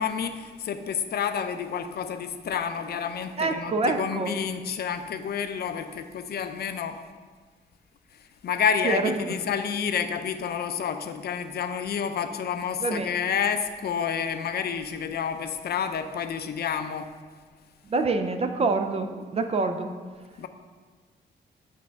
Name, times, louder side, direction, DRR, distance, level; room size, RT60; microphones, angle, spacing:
voice 1, 0.0-7.0 8.4-17.1 20.4-20.5, left 7 dB, 60° left, 9 dB, 0.5 m, -29 dB
voice 2, 3.4-4.3 8.8-9.4 12.8-13.1 17.9-19.9, right 3 dB, 35° right, 7 dB, 0.4 m, -26 dB
7.4 x 3.4 x 5.6 m, 1.5 s
wide cardioid pair, 155°, 18 cm